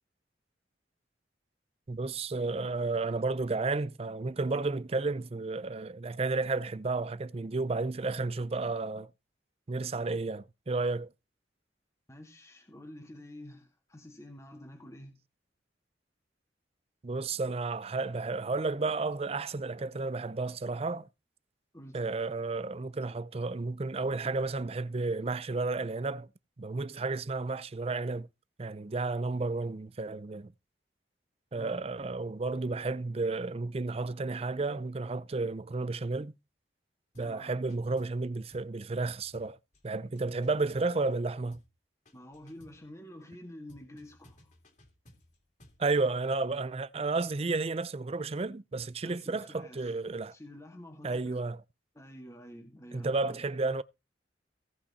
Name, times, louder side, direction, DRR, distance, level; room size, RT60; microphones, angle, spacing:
voice 1, 1.9-9.1 9.7-11.1 17.0-21.1 21.9-26.3 26.6-28.3 28.6-30.5 31.5-36.3 37.2-39.6 39.8-41.6 45.8-50.3 51.0-51.6 52.9-53.8, right 3 dB, 35° right, 0.5 m, -32 dB
voice 2, 12.1-15.2 21.7-22.1 31.5-31.8 37.2-37.5 42.1-44.5 49.0-49.9 50.3-51.4 51.9-53.4, left 1 dB, 15° left, 1.9 m, -49 dB
sound 1, 37.1-37.4 37.7-38.2 38.5-38.8 39.1-41.2 41.5-41.8 42.1-42.9 43.7-45.9, equal, 45° left, 3.0 m, -59 dB
17.0 x 5.8 x 4.2 m
head